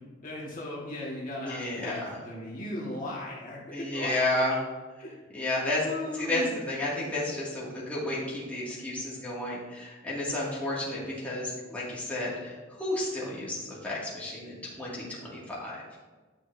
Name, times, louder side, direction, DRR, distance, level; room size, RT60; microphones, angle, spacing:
voice 1, 0.2-4.3 5.0-5.2 5.8-6.5, left 1 dB, 45° left, -5 dB, 1.7 m, -37 dB
voice 2, 1.4-2.2 3.7-4.5 5.3-5.9 6.2-15.8, left 1 dB, 5° left, -8 dB, 2.2 m, -32 dB
11.0 x 6.2 x 2.7 m, 1.3 s
head